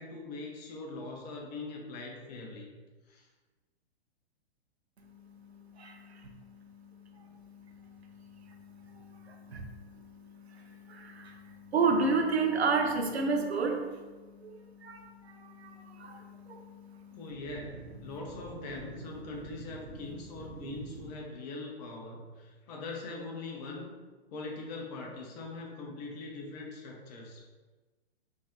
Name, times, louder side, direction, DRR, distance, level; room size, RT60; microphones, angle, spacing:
voice 1, 0.0-2.8 3.1-3.3 7.2-7.3 17.1-23.9 24.3-27.5, left 3 dB, 40° left, 0 dB, 1.1 m, -42 dB
voice 2, 5.7-6.3 7.3-8.0 8.3-13.9 14.4-17.2, right 4 dB, 80° right, 3 dB, 0.8 m, -33 dB
4.5 x 3.6 x 3.0 m, 1.3 s
figure-of-eight pair, 115°, 31 cm